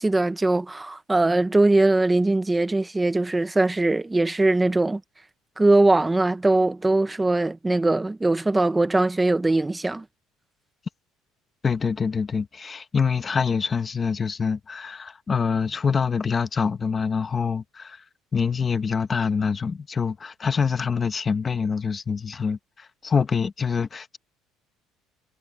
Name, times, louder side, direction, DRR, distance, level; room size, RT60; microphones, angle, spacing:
voice 1, 0.0-5.0 5.6-10.0, right 2 dB, 10° right, 0.9 m, -21 dB
voice 2, 11.6-18.0 18.3-24.2, left 5 dB, 20° left, 1.3 m, -25 dB
cardioid pair, 175°, 0 cm